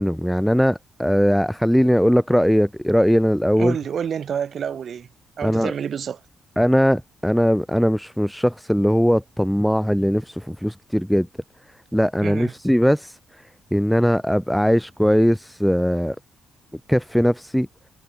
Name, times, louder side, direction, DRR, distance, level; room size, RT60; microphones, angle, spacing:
voice 1, 0.0-3.8 5.4-5.7 6.6-11.3 11.9-13.1 13.7-16.2 16.9-17.7, equal, ahead, 2.2 m, -19 dB
voice 2, 3.6-5.1 5.4-6.2 12.2-12.5, right 8 dB, 40° right, 5.3 m, -28 dB
cardioid pair, 175°, 0 cm